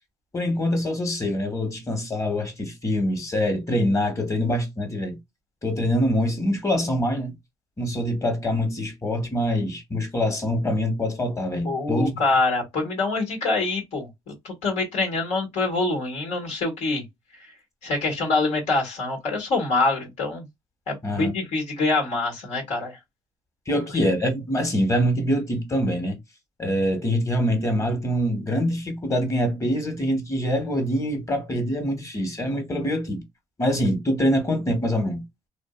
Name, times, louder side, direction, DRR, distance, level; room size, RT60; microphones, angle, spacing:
voice 1, 0.3-5.2 5.6-7.3 7.8-12.2 21.0-21.3 23.7-26.2 26.6-33.2 33.6-35.2, equal, 25° left, 1.2 m, -24 dB
voice 2, 11.6-17.0 17.8-20.4 20.9-23.0, left 3 dB, 85° left, 1.5 m, -25 dB
2.6 x 2.5 x 2.4 m
cardioid pair, 75°, 12 cm